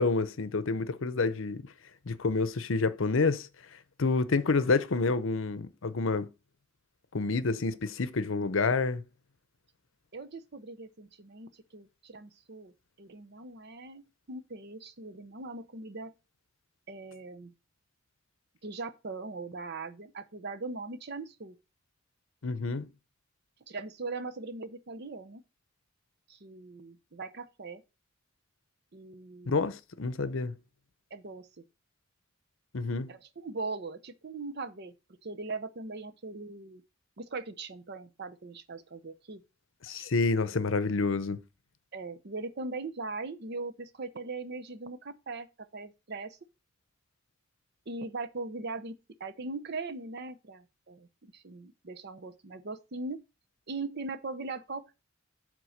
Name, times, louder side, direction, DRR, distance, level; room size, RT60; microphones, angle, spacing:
voice 1, 0.0-1.6 2.1-3.5 4.0-6.3 7.1-9.0 22.4-22.9 29.5-30.5 32.7-33.2 39.8-41.4, left 3 dB, 70° left, 0.7 m, -28 dB
voice 2, 10.1-12.7 13.0-14.0 14.3-16.1 16.9-17.5 18.6-21.6 23.7-25.4 26.3-27.8 28.9-29.7 31.1-31.5 33.1-34.9 35.2-36.8 37.2-39.4 39.9-40.1 41.9-46.4 47.9-53.2 53.7-54.8, right 3 dB, 55° right, 0.8 m, -40 dB
7.7 x 3.8 x 6.5 m
head